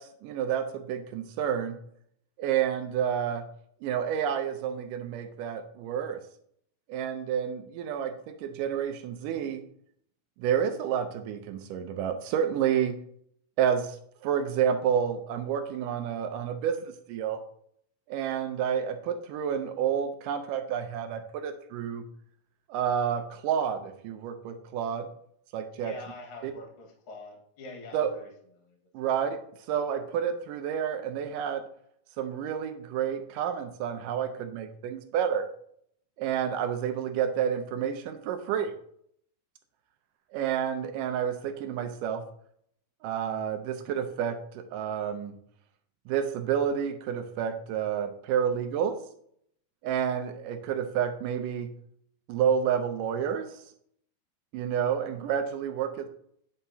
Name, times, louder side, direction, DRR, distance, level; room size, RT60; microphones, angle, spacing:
voice 1, 0.0-1.8 2.4-3.5 3.8-6.2 6.9-9.6 10.4-13.0 13.6-14.0 14.2-17.4 18.1-22.1 22.7-25.1 25.5-25.9 26.4-26.5 27.9-28.1 28.9-29.4 29.7-31.6 32.2-35.5 36.2-38.7 40.3-42.2 43.0-45.3 46.1-49.0 49.8-51.7 52.3-53.5 54.5-56.1, right 8 dB, 75° right, 7 dB, 2.1 m, -29 dB
voice 2, 25.8-28.3 28.6-29.1, left 3 dB, 45° left, 0 dB, 2.1 m, -45 dB
9.3 x 5.8 x 2.8 m, 0.67 s
omnidirectional pair, 4.2 m